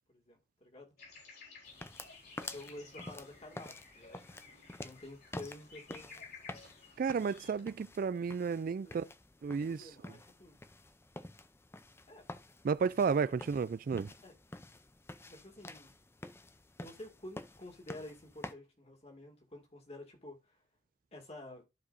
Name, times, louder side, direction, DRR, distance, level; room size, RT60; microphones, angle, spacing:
voice 1, 0.1-0.9 2.5-4.3 4.8-6.3 8.8-8.9 9.7-10.6 12.1-12.3 13.1-13.2 14.2-14.4 15.3-16.0 16.8-20.6 21.1-21.7, left 1 dB, 35° left, 2.2 m, -50 dB
sound 1, 1.0-7.6, left 4 dB, 60° left, 4.5 m, -55 dB
sound 2, 1.7-18.5, left 2 dB, 15° left, 0.5 m, -49 dB
voice 2, 7.0-9.0 9.4-9.9 12.6-14.1, right 5 dB, 50° right, 0.3 m, -32 dB
13.5 x 4.8 x 2.6 m
head